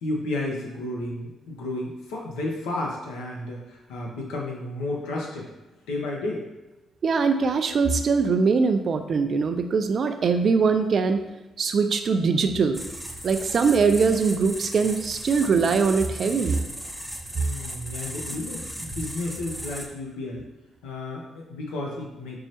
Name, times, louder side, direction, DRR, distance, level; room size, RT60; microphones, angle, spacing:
voice 1, 0.0-5.5 5.9-6.4 17.3-20.5 20.8-22.4, left 2 dB, 90° left, -1 dB, 0.6 m, -32 dB
voice 2, 7.0-11.2 11.6-12.8 13.2-16.7, right 5 dB, 55° right, 8 dB, 0.3 m, -22 dB
sound 1, 12.7-19.9, right 1 dB, ahead, 0.5 m, -36 dB
4.5 x 2.1 x 2.7 m, 1.1 s
supercardioid pair, 55°, 0 cm